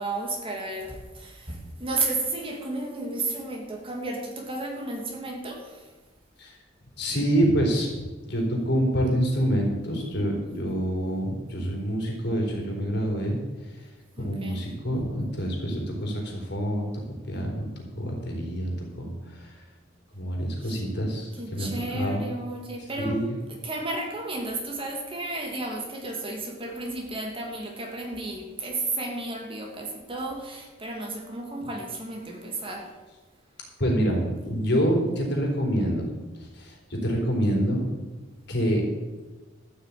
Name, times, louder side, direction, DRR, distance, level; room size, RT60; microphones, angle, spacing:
voice 1, 0.0-5.9 14.2-14.6 20.6-20.8 21.4-23.2 23.5-33.0, right 2 dB, 30° right, 1 dB, 2.5 m, -33 dB
voice 2, 7.0-13.4 14.2-16.9 17.3-17.7 17.9-19.6 20.1-22.3 23.0-23.3 31.6-31.7 33.8-36.1 36.4-36.8 37.0-37.8 38.5-38.8, equal, 65° left, 0 dB, 3.9 m, -26 dB
13.5 x 6.6 x 8.5 m, 1.2 s
head